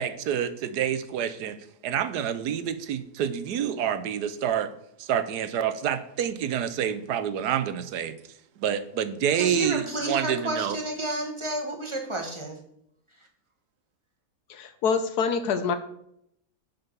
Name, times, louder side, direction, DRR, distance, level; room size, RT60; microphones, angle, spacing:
voice 1, 0.0-1.6 1.8-8.2 8.6-10.8, right 9 dB, 80° right, 12 dB, 1.3 m, -28 dB
voice 2, 9.3-12.6, right 2 dB, 20° right, 2 dB, 1.5 m, -31 dB
voice 3, 14.5-15.8, left 6 dB, 75° left, 10 dB, 1.4 m, -26 dB
7.7 x 5.7 x 6.8 m, 0.74 s
omnidirectional pair, 1.7 m